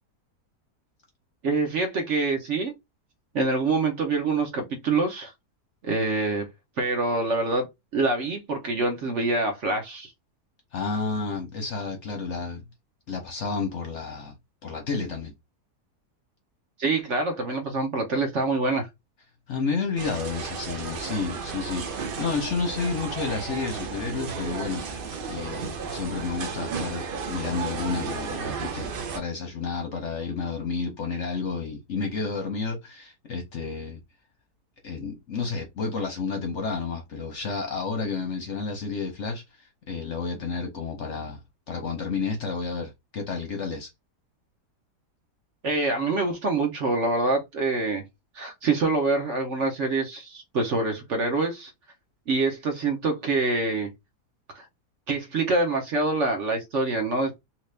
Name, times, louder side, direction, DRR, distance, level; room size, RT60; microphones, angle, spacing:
voice 1, 1.4-2.7 3.3-5.3 5.8-6.5 6.8-7.7 7.9-10.1 16.8-18.9 45.6-48.0 48.3-51.7 52.3-53.9 54.5-54.6 55.1-57.4, right 3 dB, 55° right, 1.0 m, -25 dB
voice 2, 10.7-12.7 13.1-14.3 14.6-15.3 19.5-28.9 29.1-34.0 34.8-41.4 41.7-43.9, left 4 dB, 55° left, 0.9 m, -31 dB
sound 1, 20.0-29.2, right 5 dB, 70° right, 0.5 m, -33 dB
2.9 x 2.9 x 3.2 m
omnidirectional pair, 1.8 m